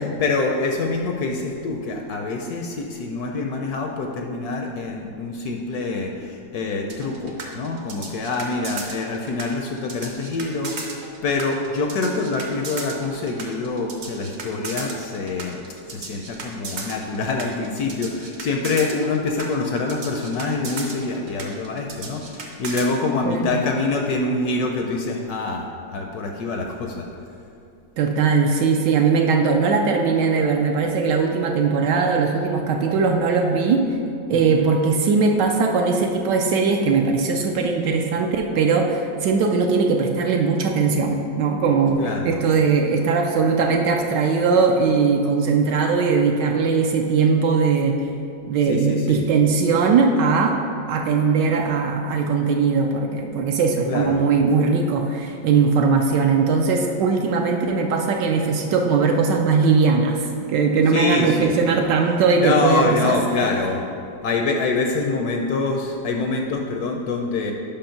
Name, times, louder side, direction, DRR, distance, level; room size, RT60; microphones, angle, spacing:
voice 1, 0.0-15.6 15.9-27.1 34.3-34.7 42.0-42.4 48.7-49.2 53.9-54.2 60.9-61.6 62.4-63.8 64.2-67.5, left 3 dB, 70° left, 2 dB, 0.9 m, -25 dB
sound 1, 6.9-22.9, right 4 dB, 55° right, 0.8 m, -35 dB
voice 2, 23.2-23.6 28.0-33.8 34.3-42.0 42.2-48.0 48.5-50.6 50.9-60.2 60.5-63.2, right 5 dB, 75° right, 2 dB, 1.2 m, -20 dB
5.3 x 5.3 x 5.7 m, 2.6 s
omnidirectional pair, 2.0 m